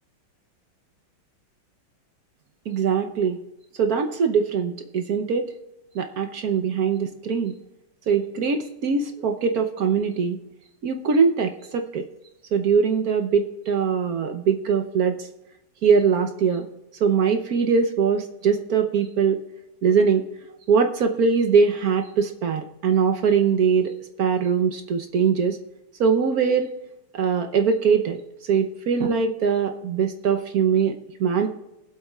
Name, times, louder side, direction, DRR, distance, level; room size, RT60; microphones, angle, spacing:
voice 1, 2.7-3.4 3.8-5.5 5.9-7.6 8.1-10.4 10.8-12.1 12.5-15.3 15.8-16.7 17.0-19.4 19.8-20.2 20.7-23.9 24.2-25.6 26.0-26.7 27.1-30.9 31.2-31.5, right 6 dB, 60° right, 6 dB, 1.0 m, -22 dB
22.0 x 8.0 x 2.3 m, 0.92 s
omnidirectional pair, 2.3 m